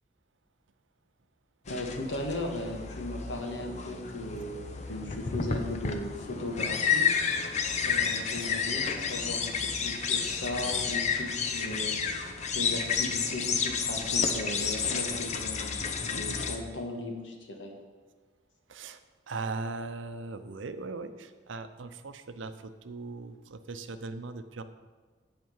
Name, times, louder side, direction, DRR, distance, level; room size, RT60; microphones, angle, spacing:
voice 1, 1.7-7.1 7.8-12.0 12.5-17.7, left 1 dB, 85° left, 2 dB, 1.5 m, -37 dB
sound 1, 1.7-16.6, left 6 dB, 35° left, 0.6 m, -31 dB
voice 2, 18.7-19.0 19.3-24.6, right 3 dB, 85° right, 10 dB, 0.6 m, -39 dB
9.3 x 4.9 x 7.2 m, 1.4 s
head